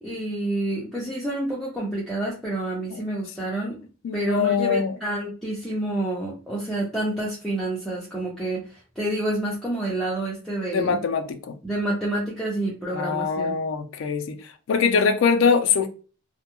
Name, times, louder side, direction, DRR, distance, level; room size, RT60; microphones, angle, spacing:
voice 1, 0.0-3.8 4.1-11.0 11.6-13.6, right 1 dB, ahead, 0.4 m, -28 dB
voice 2, 4.0-4.9 10.7-11.5 12.9-14.4 14.7-15.9, left 5 dB, 70° left, 0.3 m, -22 dB
2.2 x 2.0 x 2.8 m
head